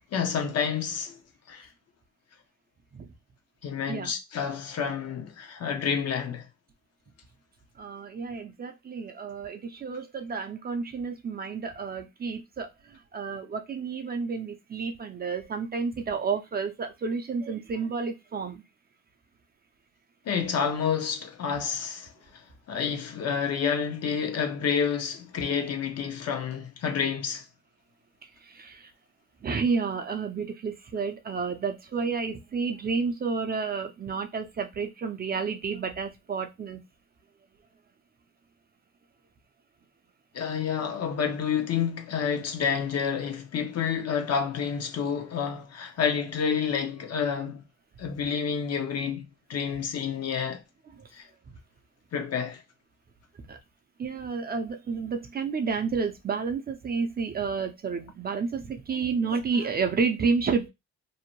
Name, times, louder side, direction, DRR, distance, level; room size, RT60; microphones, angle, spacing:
voice 1, 0.1-1.2 1.5-1.7 3.6-6.5 20.3-22.4 22.7-27.4 40.3-47.6 48.0-50.6 51.1-51.3 52.1-52.6, left 7 dB, 55° left, 0.7 m, -29 dB
voice 2, 7.8-18.6 28.4-28.9 29.4-36.8 53.5-53.6 54.0-60.7, right 5 dB, 30° right, 0.5 m, -30 dB
2.7 x 2.1 x 2.9 m
cardioid pair, 90°, 30 cm